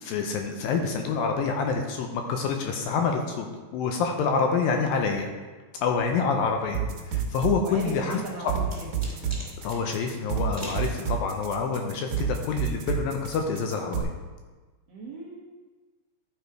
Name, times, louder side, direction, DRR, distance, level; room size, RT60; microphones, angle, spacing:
voice 1, 0.0-3.5 3.7-5.3 5.8-8.2 9.6-14.1, left 5 dB, 80° left, 3 dB, 2.1 m, -27 dB
sound 1, 6.7-14.0, right 7 dB, 60° right, 2.1 m, -29 dB
voice 2, 7.6-8.9 14.9-15.4, right 3 dB, 80° right, -5 dB, 1.4 m, -38 dB
sound 2, 7.9-9.8 10.5-10.9, equal, 10° left, 0.9 m, -41 dB
12.0 x 4.9 x 4.6 m, 1.3 s
omnidirectional pair, 4.7 m